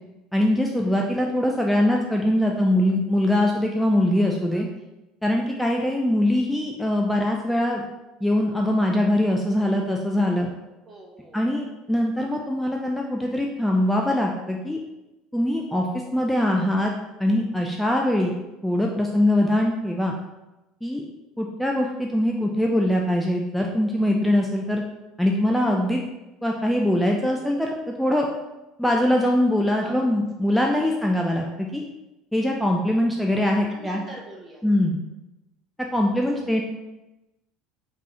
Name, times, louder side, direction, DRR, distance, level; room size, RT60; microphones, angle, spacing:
voice 1, 0.3-4.7 5.2-7.8 8.2-10.5 11.3-14.8 15.3-15.9 16.1-16.9 17.2-18.3 18.6-20.1 20.8-21.0 21.4-24.8 25.2-26.0 26.4-28.3 28.8-31.8 32.3-34.0 34.6-35.0 35.9-36.6, left 1 dB, 5° left, 0 dB, 0.5 m, -22 dB
voice 2, 4.5-4.9 10.8-11.4 29.8-30.2 33.7-34.6 36.1-36.2, right 1 dB, 30° right, 0 dB, 1.0 m, -44 dB
3.7 x 3.0 x 3.7 m, 1.0 s
figure-of-eight pair, 65°, 0 cm